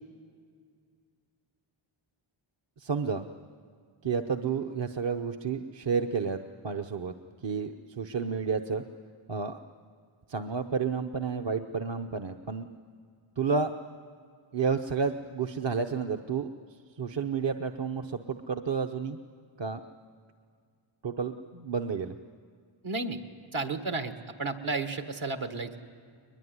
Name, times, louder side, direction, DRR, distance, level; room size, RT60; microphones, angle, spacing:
voice 1, 2.8-3.3 4.0-6.4 6.6-7.1 7.4-8.8 9.3-9.6 10.3-12.7 13.4-13.7 14.5-16.5 17.0-19.2 19.6-19.8 21.0-22.2, right 5 dB, 60° right, 6 dB, 0.9 m, -31 dB
voice 2, 22.8-23.2 23.5-24.1 24.4-25.8, right 3 dB, 75° right, 7 dB, 1.8 m, -32 dB
22.0 x 21.0 x 9.6 m, 2.1 s
wide cardioid pair, 65°, 49 cm